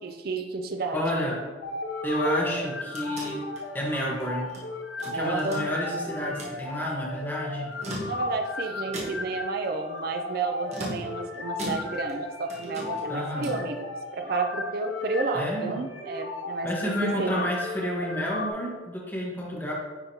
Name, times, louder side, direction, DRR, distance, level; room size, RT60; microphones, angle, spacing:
voice 1, 0.0-1.0 5.0-5.7 8.1-13.8 14.1-17.5, right 3 dB, 55° right, 5 dB, 0.5 m, -31 dB
voice 2, 0.9-1.4 2.0-3.4 3.7-4.5 5.0-7.7 13.1-13.6 15.3-15.8 16.6-19.7, equal, 10° left, -4 dB, 1.2 m, -30 dB
sound 1, 1.6-18.5, left 2 dB, 85° left, 0.8 m, -35 dB
sound 2, 2.5-4.6 5.0-6.0 6.3-6.6 7.6-8.5 8.9-9.4 10.7-12.2 12.5-13.7, equal, 35° right, 1.2 m, -38 dB
9.9 x 3.7 x 2.8 m, 1.3 s
head